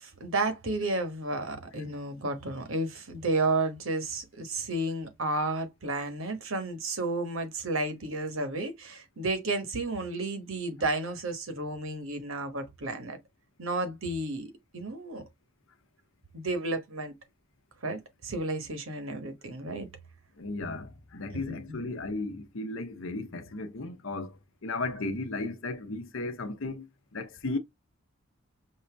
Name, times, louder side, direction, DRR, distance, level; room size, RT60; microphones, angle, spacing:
voice 1, 0.0-13.2 13.6-15.2 16.3-17.1 17.8-19.9 21.5-21.8, right 2 dB, 75° right, 1.2 m, -32 dB
voice 2, 20.4-26.9 27.1-27.6, left 2 dB, 70° left, 0.8 m, -35 dB
5.5 x 2.6 x 3.4 m
head